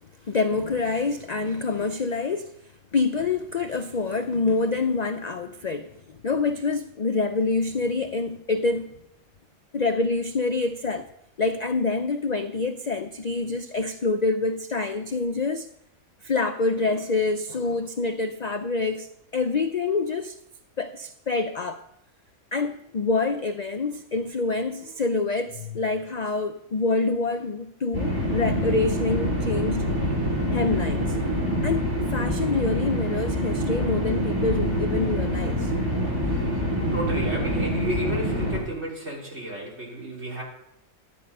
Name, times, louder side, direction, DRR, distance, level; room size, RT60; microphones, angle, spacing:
voice 1, 0.2-2.5 2.9-8.9 9.7-11.1 11.4-15.7 16.2-20.4 20.8-21.8 22.5-29.8 30.5-31.2 31.6-35.7, left 3 dB, 60° left, 0.4 m, -26 dB
sound 1, 27.9-38.6, equal, 15° right, 6.8 m, -26 dB
voice 2, 36.9-40.4, right 1 dB, 45° right, 4.0 m, -32 dB
13.0 x 9.3 x 5.4 m
omnidirectional pair, 1.5 m